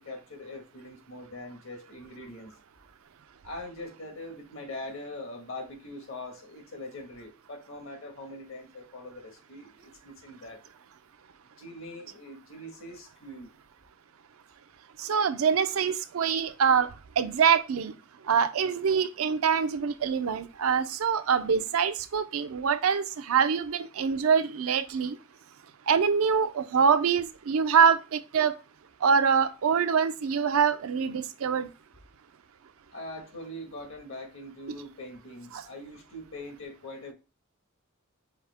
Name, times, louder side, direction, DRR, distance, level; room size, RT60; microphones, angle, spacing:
voice 1, 0.0-2.5 3.4-10.6 11.6-13.5 32.9-37.1, left 1 dB, 70° left, 1.4 m, -42 dB
voice 2, 15.0-16.9 17.2-17.9 18.3-25.2 25.9-28.5 29.0-31.7 35.5-35.6, right 6 dB, 85° right, 0.5 m, -24 dB
4.9 x 2.8 x 3.4 m
head